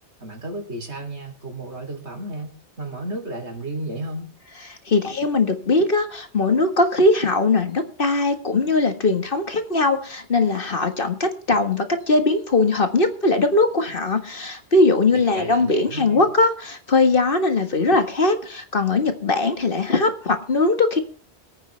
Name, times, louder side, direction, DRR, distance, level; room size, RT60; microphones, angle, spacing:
voice 1, 0.2-4.3 15.1-16.3, right 1 dB, 80° right, 4 dB, 3.9 m, -33 dB
voice 2, 4.7-21.0, left 3 dB, 55° left, 7 dB, 1.9 m, -20 dB
25.0 x 9.0 x 3.4 m, 0.42 s
omnidirectional pair, 1.1 m